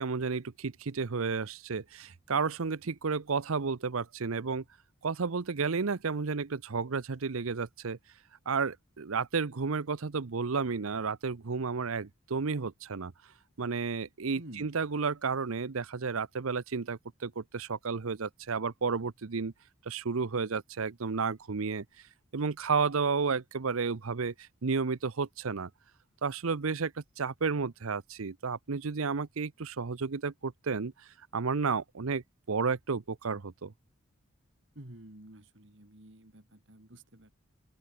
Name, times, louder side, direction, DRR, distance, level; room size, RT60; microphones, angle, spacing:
voice 1, 0.0-4.6 5.0-8.0 8.5-13.1 13.6-19.5 19.9-21.8 22.3-24.3 24.6-25.7 26.2-26.9 27.2-30.9 31.3-32.2 32.5-33.7, right 5 dB, 75° right, 0.7 m, -32 dB
voice 2, 14.3-14.7 34.7-37.3, right 1 dB, 55° right, 2.5 m, -50 dB
open air
head